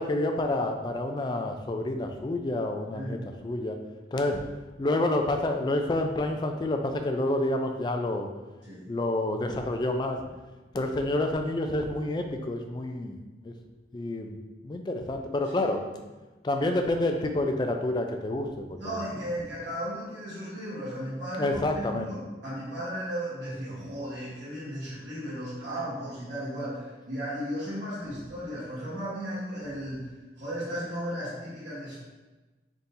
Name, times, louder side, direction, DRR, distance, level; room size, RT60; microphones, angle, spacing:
voice 1, 0.0-3.2 3.4-3.8 4.1-4.4 4.8-8.3 8.9-10.2 10.7-13.2 13.4-13.5 13.9-14.4 14.6-15.8 16.4-19.0 21.4-22.1, left 1 dB, 25° left, 5 dB, 0.3 m, -28 dB
voice 2, 2.9-3.2 8.6-8.9 15.5-15.7 18.8-30.1 30.4-32.0, equal, 85° right, -10 dB, 1.4 m, -35 dB
3.6 x 2.7 x 4.0 m, 1.2 s
head